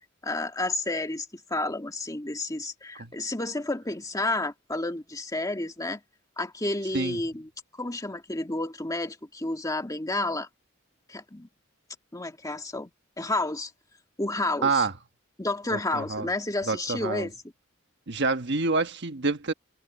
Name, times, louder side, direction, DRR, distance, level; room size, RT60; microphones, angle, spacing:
voice 1, 0.2-6.0 6.4-10.5 11.1-11.5 12.1-12.9 13.2-13.7 14.2-14.9 15.4-17.3, left 2 dB, 15° left, 1.9 m, -31 dB
voice 2, 14.6-14.9 15.7-16.3 16.7-17.3 18.1-19.5, right 3 dB, 60° right, 1.3 m, -27 dB
head